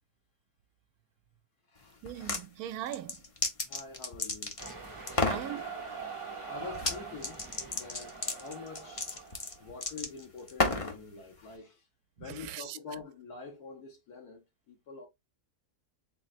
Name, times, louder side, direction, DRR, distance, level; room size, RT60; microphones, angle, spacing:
sound 1, 2.0-2.4 2.9-4.7 5.1-5.5 6.7-7.0 7.2-11.0, left 3 dB, 35° left, 0.5 m, -32 dB
voice 1, 2.0-3.2 5.3-5.6 12.2-12.8, right 12 dB, 75° right, 1.0 m, -39 dB
voice 2, 3.6-4.6 5.1-5.5 6.5-9.0 9.6-11.8 12.2-15.1, left 5 dB, 80° left, 1.7 m, -46 dB
sound 2, 4.6-9.7, right 5 dB, 25° right, 0.7 m, -43 dB
4.2 x 4.1 x 2.4 m
omnidirectional pair, 1.6 m